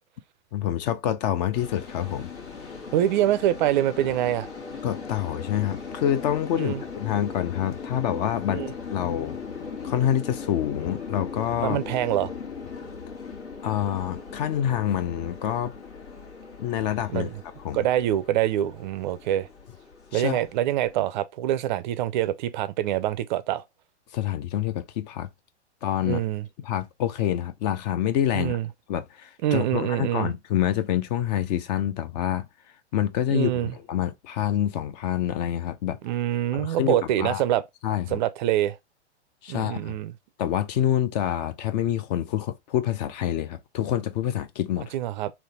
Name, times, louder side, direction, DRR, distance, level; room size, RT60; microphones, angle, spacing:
voice 1, 0.5-2.3 4.8-8.6 8.9-9.4 9.8-11.8 13.6-15.7 16.6-17.3 17.6-17.8 20.1-20.4 24.1-25.3 25.8-26.2 26.6-28.6 28.9-32.5 32.9-36.0 36.5-37.4 37.8-38.2 39.4-39.9 40.4-44.9, left 11 dB, 40° left, 0.4 m, -27 dB
sound 1, 1.5-21.1, left 5 dB, 80° left, 1.8 m, -38 dB
voice 2, 2.9-4.5 6.6-6.8 8.5-8.7 11.6-12.3 17.1-17.3 17.7-19.5 20.1-23.6 26.0-26.4 28.3-28.7 29.4-30.3 33.3-33.7 36.0-37.6 38.1-38.8 39.5-40.1 44.9-45.3, right 12 dB, 45° right, 0.4 m, -25 dB
3.3 x 2.9 x 2.7 m
hypercardioid pair, 125°, 34 cm